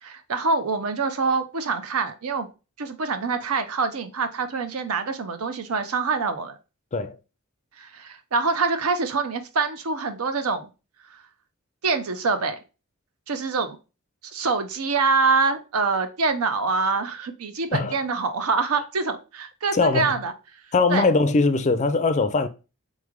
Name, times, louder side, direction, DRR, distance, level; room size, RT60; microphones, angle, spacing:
voice 1, 0.0-2.5 2.8-6.5 7.8-10.7 11.8-12.6 13.3-13.8 14.3-20.3 20.9-21.1, right 4 dB, 80° right, 0.6 m, -25 dB
voice 2, 19.7-20.2 20.7-22.5, left 3 dB, 30° left, 0.4 m, -21 dB
3.7 x 3.3 x 3.5 m
head